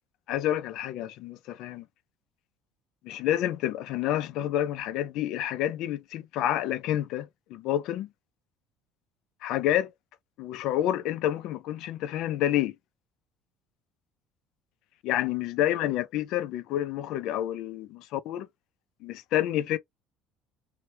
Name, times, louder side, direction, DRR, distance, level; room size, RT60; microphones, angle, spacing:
voice 1, 0.3-1.8 3.0-8.1 9.4-9.9 10.4-12.8 15.0-18.5 19.0-19.8, left 12 dB, 60° left, 0.4 m, -29 dB
2.8 x 2.1 x 3.0 m
cardioid pair, 145°, 0 cm